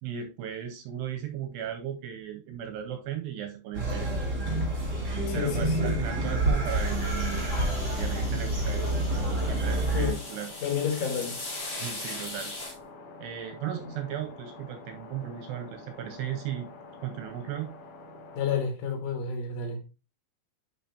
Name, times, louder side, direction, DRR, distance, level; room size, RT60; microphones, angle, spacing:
voice 1, 0.0-4.1 5.3-7.6 7.9-8.9 9.5-10.5 11.8-12.6 13.2-16.7 17.0-17.7, right 10 dB, 85° right, 2.5 m, -36 dB
sound 1, 3.7-10.1, right 1 dB, 35° right, 1.1 m, -28 dB
voice 2, 5.3-6.0 9.9-10.2 10.6-11.4 13.8-14.0 18.4-19.8, left 6 dB, 80° left, 4.2 m, -30 dB
sound 2, 6.0-18.7, left 3 dB, 60° left, 3.9 m, -47 dB
sound 3, 6.6-12.7, left 2 dB, 25° left, 2.3 m, -40 dB
11.0 x 4.1 x 2.8 m
omnidirectional pair, 5.4 m